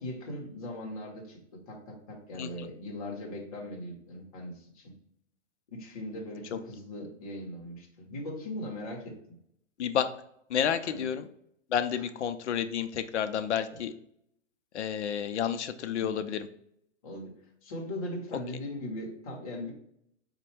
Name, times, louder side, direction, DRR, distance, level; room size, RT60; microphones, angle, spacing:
voice 1, 0.0-5.0 5.7-9.2 10.8-11.1 13.7-13.8 16.0-16.2 17.0-17.3 17.6-19.7, left 1 dB, 30° left, -1 dB, 0.8 m, -39 dB
voice 2, 2.3-2.7 6.5-6.6 9.8-10.1 10.5-11.3 11.7-13.9 14.7-16.5, left 8 dB, 65° left, 10 dB, 0.5 m, -30 dB
4.2 x 2.2 x 4.4 m, 0.71 s
hypercardioid pair, 175°, 37 cm